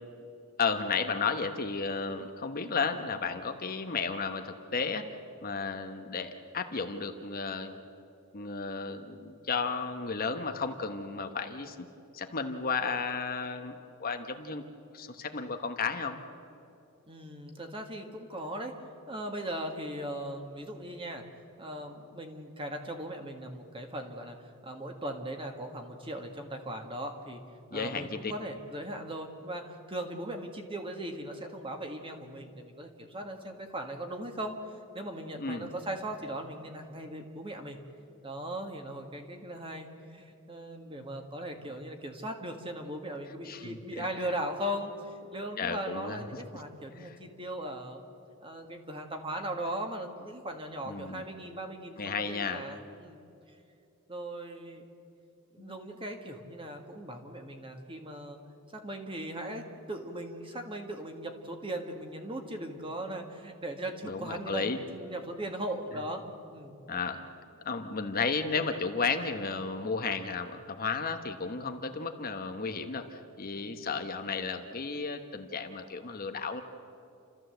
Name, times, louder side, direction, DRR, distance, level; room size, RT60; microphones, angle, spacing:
voice 1, 0.6-5.1 5.4-7.8 8.3-11.8 12.1-14.6 14.9-16.2 27.7-28.3 35.4-35.7 43.4-44.3 45.6-46.2 46.9-47.1 50.9-51.2 52.0-52.6 55.6-55.7 64.0-64.8 66.9-67.2 67.6-76.6, left 4 dB, 40° left, 6 dB, 1.1 m, -33 dB
voice 2, 17.1-18.7 19.1-21.2 21.6-24.4 24.6-27.4 27.7-34.5 34.9-37.8 38.2-48.0 48.4-53.2 54.1-54.9 55.5-58.4 58.7-66.2 66.5-66.7 73.5-73.8, right 1 dB, 25° right, 4 dB, 1.8 m, -38 dB
30.0 x 13.5 x 8.0 m, 2.6 s
head